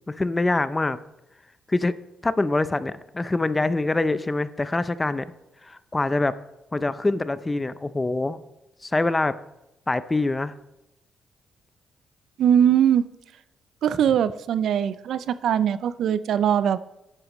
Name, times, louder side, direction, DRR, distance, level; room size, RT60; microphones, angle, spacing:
voice 1, 0.1-1.0 1.7-1.9 2.2-5.3 5.6-6.3 6.7-8.4 8.8-9.4 9.9-10.5, left 2 dB, 20° left, 15 dB, 0.5 m, -24 dB
voice 2, 12.4-13.0 13.8-16.8, right 9 dB, 75° right, 15 dB, 0.4 m, -21 dB
11.0 x 8.8 x 3.1 m, 0.90 s
cardioid pair, 70°, 0 cm